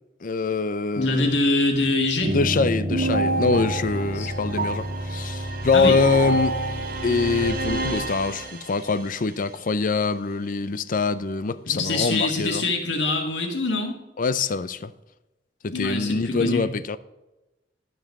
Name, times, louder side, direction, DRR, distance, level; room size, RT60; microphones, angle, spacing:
voice 1, 0.2-1.3 2.3-6.6 7.0-12.6 14.2-14.9 15.6-17.0, left 4 dB, 50° left, 0.5 m, -24 dB
voice 2, 1.0-2.4 4.1-4.3 5.7-6.0 11.7-14.0 15.7-16.6, left 2 dB, 80° left, 2.2 m, -24 dB
sound 1, 2.2-9.0, right 1 dB, 55° right, 1.6 m, -27 dB
12.5 x 5.5 x 6.0 m
head